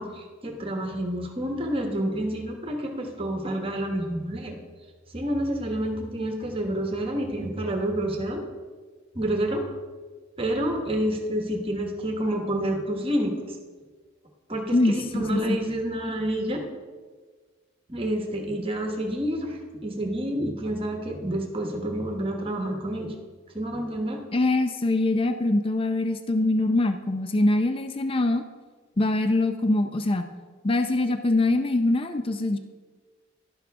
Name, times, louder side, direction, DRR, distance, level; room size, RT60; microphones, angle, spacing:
voice 1, 0.0-4.5 5.1-8.4 9.1-9.6 10.4-13.6 14.5-16.6 17.9-23.1 23.5-24.2, right 1 dB, 30° right, 3 dB, 1.2 m, -28 dB
voice 2, 14.7-15.6 24.3-28.5 29.0-30.3 30.6-32.6, left 2 dB, 30° left, 8 dB, 0.5 m, -23 dB
11.5 x 11.0 x 3.5 m, 1.5 s
head